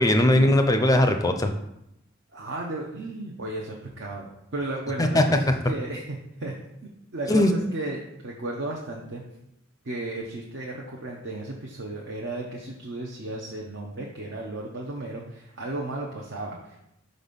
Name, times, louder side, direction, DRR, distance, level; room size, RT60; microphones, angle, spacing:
voice 1, 0.0-1.5 5.0-5.2 7.3-7.6, left 1 dB, 20° left, 6 dB, 0.4 m, -19 dB
voice 2, 2.3-6.5 6.8-9.2 9.8-16.8, right 2 dB, 70° right, -2 dB, 0.8 m, -34 dB
5.1 x 4.1 x 5.2 m, 0.83 s
head